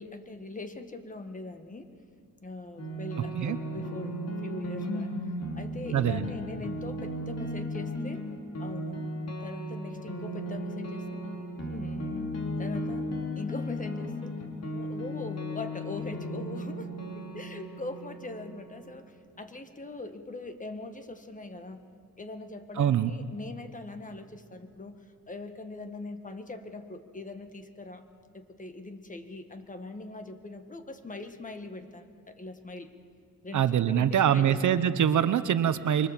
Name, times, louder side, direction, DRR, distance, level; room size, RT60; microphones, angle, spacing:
voice 1, 0.0-1.9 2.4-8.3 8.6-9.1 9.4-11.2 11.6-13.1 13.3-14.3 14.7-16.9 17.1-21.8 22.2-25.0 25.3-28.0 28.3-32.9 33.4-34.9, left 2 dB, 20° left, 8 dB, 1.6 m, -41 dB
sound 1, 2.8-19.0, equal, 45° left, 3.5 m, -36 dB
voice 2, 5.9-6.3 22.8-23.1 33.5-36.1, right 9 dB, 55° right, 12 dB, 1.0 m, -24 dB
24.5 x 24.0 x 7.5 m, 2.3 s
cardioid pair, 120°, 35 cm